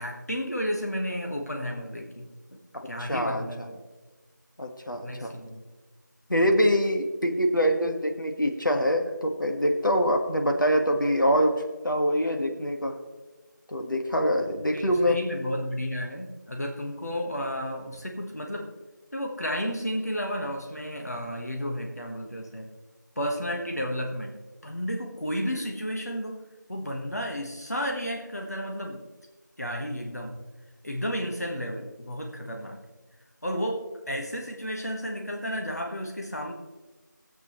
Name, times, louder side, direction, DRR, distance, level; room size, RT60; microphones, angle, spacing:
voice 1, 0.0-2.6 2.8-3.8 5.0-5.6 14.7-18.7 19.1-22.7 23.1-24.4 24.6-26.4 26.7-29.0 29.6-30.4 30.8-32.8 33.4-36.5, equal, 55° left, 1 dB, 1.3 m, -32 dB
voice 2, 2.7-3.4 4.6-5.3 6.3-11.5 11.8-13.0 13.7-15.2, equal, 85° left, 4 dB, 1.7 m, -24 dB
17.5 x 8.0 x 3.1 m, 1.3 s
figure-of-eight pair, 180°, 10 cm